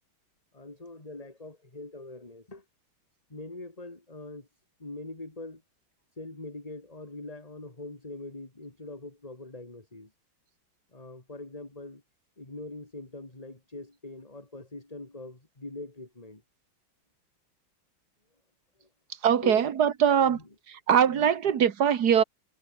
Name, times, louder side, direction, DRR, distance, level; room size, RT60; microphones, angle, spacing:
voice 1, 0.5-2.6 3.3-4.5 4.8-5.6 6.1-10.1 10.9-12.0 12.4-16.4 18.8-18.9 19.4-19.7 20.2-20.5 21.0-21.4, left 2 dB, 20° left, 2.8 m, -43 dB
voice 2, 19.2-20.4 20.9-22.2, right 8 dB, 55° right, 1.8 m, -22 dB
omnidirectional pair, 2.2 m